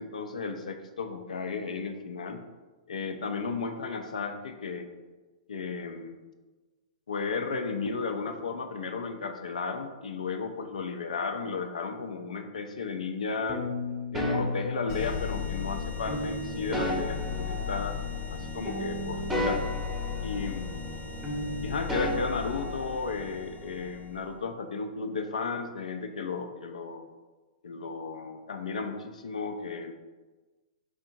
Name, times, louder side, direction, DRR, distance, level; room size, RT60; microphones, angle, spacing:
voice 1, 0.0-2.4 2.9-4.9 5.5-6.2 7.1-13.6 14.1-18.0 18.3-19.6 20.2-20.9 21.6-27.0 27.6-29.9, left 4 dB, 75° left, 7 dB, 0.4 m, -34 dB
sound 1, 13.5-15.5 16.1-18.4 18.6-21.0 21.2-23.3, left 1 dB, 5° right, 0.7 m, -34 dB
sound 2, 14.9-24.3, left 6 dB, 35° left, 0.7 m, -36 dB
4.5 x 2.7 x 2.6 m, 1.3 s
figure-of-eight pair, 110°, 4 cm